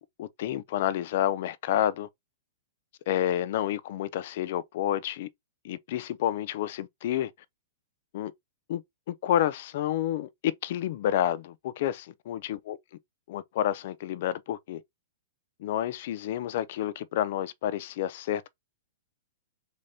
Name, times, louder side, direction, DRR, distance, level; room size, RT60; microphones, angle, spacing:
voice 1, 0.2-2.1 3.1-5.3 5.6-7.3 8.1-8.3 8.7-8.8 9.1-12.8 13.3-14.8 15.6-18.5, left 11 dB, 45° left, 0.4 m, -29 dB
3.6 x 3.4 x 2.6 m
hypercardioid pair, 170°, 0 cm